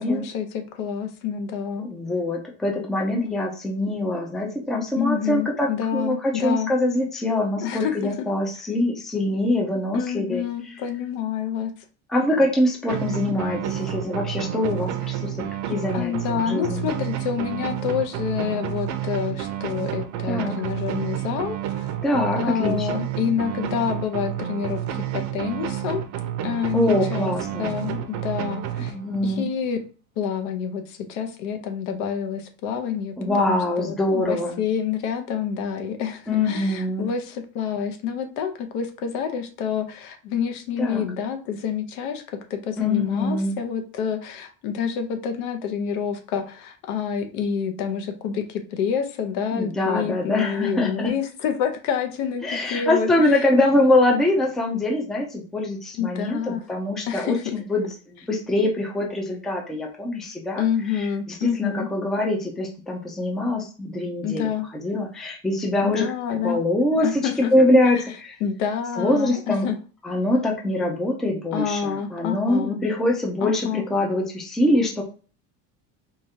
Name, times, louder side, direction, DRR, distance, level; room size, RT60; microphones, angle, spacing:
voice 1, 0.0-1.9 5.0-6.7 7.6-8.3 9.9-11.7 15.9-21.9 22.4-26.1 26.4-27.3 27.6-28.9 29.2-29.8 30.2-42.2 42.5-53.1 56.0-56.6 57.1-57.6 60.6-61.9 64.2-64.7 65.8-66.6 67.0-67.7 67.9-68.0 68.4-69.8 71.5-72.8 73.4-73.8, left 7 dB, 75° left, 6 dB, 0.8 m, -28 dB
voice 2, 1.8-10.4 12.1-15.4 15.7-16.9 20.3-20.6 22.0-23.1 26.7-27.7 28.8-29.5 33.2-34.6 36.3-37.1 40.8-41.0 42.8-43.6 49.5-51.1 52.4-57.9 58.1-60.6 60.9-64.5 64.8-66.1 66.4-67.2 67.5-68.4 69.0-69.7 70.0-75.0, left 1 dB, ahead, 0 dB, 0.4 m, -24 dB
sound 1, 12.9-29.4, right 10 dB, 55° right, 0.6 m, -30 dB
4.8 x 2.4 x 2.7 m, 0.37 s
cardioid pair, 165°, 34 cm